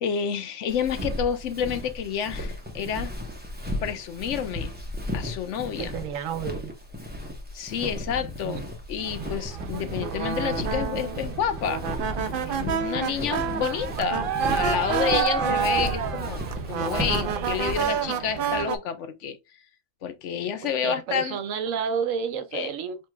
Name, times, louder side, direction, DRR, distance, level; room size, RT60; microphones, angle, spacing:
voice 1, 0.0-3.1 3.8-4.7 5.1-6.0 7.5-12.1 12.4-19.6 20.0-21.4 22.5-22.7, left 8 dB, 70° left, 1.0 m, -29 dB
Walk footsteps, 0.7-18.0, left 1 dB, 10° right, 0.9 m, -35 dB
voice 2, 5.8-6.7 8.4-8.6 20.6-23.0, right 7 dB, 85° right, 1.1 m, -30 dB
sound 1, 9.0-18.8, right 7 dB, 55° right, 0.6 m, -28 dB
4.6 x 3.3 x 2.3 m
omnidirectional pair, 1.3 m